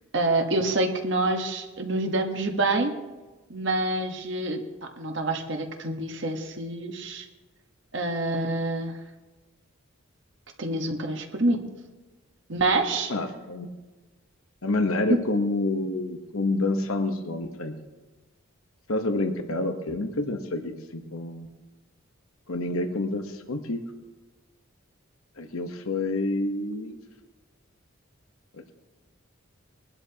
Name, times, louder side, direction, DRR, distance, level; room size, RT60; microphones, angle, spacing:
voice 1, 0.1-2.9 3.5-4.6 5.0-7.3 7.9-9.0 10.6-11.6 12.5-13.1 15.1-15.2, right 2 dB, 60° right, 3 dB, 1.3 m, -26 dB
voice 2, 13.1-13.7 14.6-17.7 18.9-21.5 22.5-23.8 25.4-27.0 28.5-28.7, left 2 dB, 85° left, 6 dB, 1.0 m, -28 dB
22.0 x 12.0 x 2.9 m, 1.2 s
head